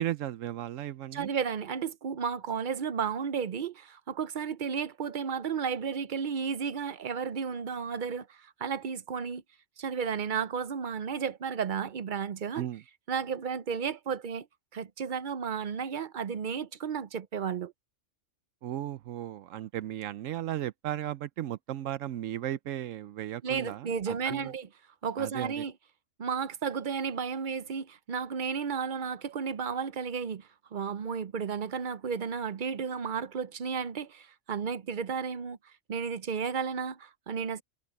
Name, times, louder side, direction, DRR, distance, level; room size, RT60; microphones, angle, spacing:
voice 1, 0.0-1.3 12.6-12.8 18.6-24.5 25.2-25.6, right 12 dB, 80° right, 1.0 m, -35 dB
voice 2, 1.1-9.4 9.8-12.7 13.1-14.5 14.7-17.7 23.4-24.7 25.0-25.7 26.2-35.6 35.9-37.6, right 6 dB, 50° right, 0.7 m, -33 dB
omnidirectional pair, 1.3 m